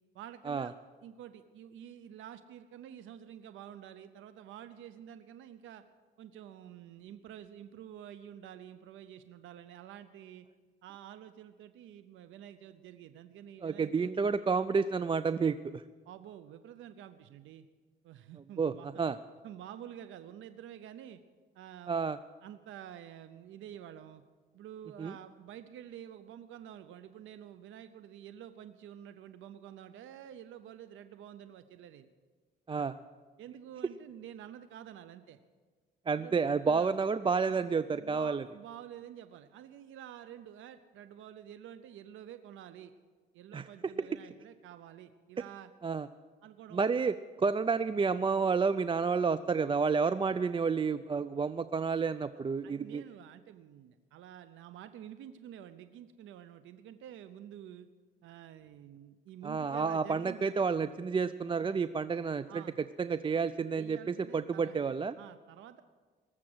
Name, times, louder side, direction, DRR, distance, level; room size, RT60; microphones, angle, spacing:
voice 1, 0.1-0.7 1.0-5.8 6.2-10.5 10.8-14.3 16.1-17.7 18.0-18.9 19.4-21.2 21.5-22.1 22.4-24.2 24.5-32.1 32.8-32.9 33.4-35.4 36.1-36.4 36.7-36.9 37.9-42.9 43.3-45.7 46.4-46.9 52.3-57.9 58.2-60.6 61.6-61.8 62.5-62.8 63.7-64.8 65.2-65.8, right 10 dB, 80° right, 11 dB, 0.7 m, -49 dB
voice 2, 13.6-15.8 18.6-19.2 21.9-22.2 25.0-25.1 32.7-32.9 36.1-38.4 43.5-43.7 44.0-44.1 45.8-46.1 46.7-53.0 59.4-62.6 63.0-65.2, right 5 dB, 25° right, 14 dB, 0.4 m, -30 dB
19.5 x 7.4 x 7.9 m, 1.4 s
cardioid pair, 90°, 20 cm